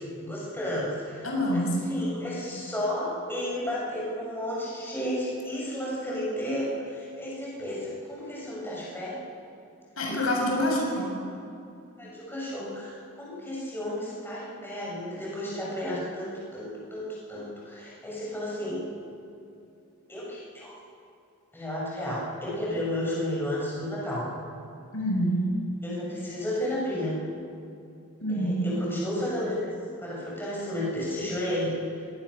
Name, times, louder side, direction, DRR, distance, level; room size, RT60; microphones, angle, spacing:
voice 1, 0.0-1.6 1.9-9.2 10.5-10.7 12.0-18.8 20.1-20.7 21.5-24.3 25.8-27.1 28.3-29.7 30.0-31.7, left 1 dB, 10° left, -6 dB, 7.7 m, -32 dB
voice 2, 1.2-1.8 10.0-11.0 24.9-25.4 28.2-28.6, equal, 85° left, -1 dB, 7.2 m, -26 dB
24.0 x 18.5 x 6.7 m, 2.6 s
head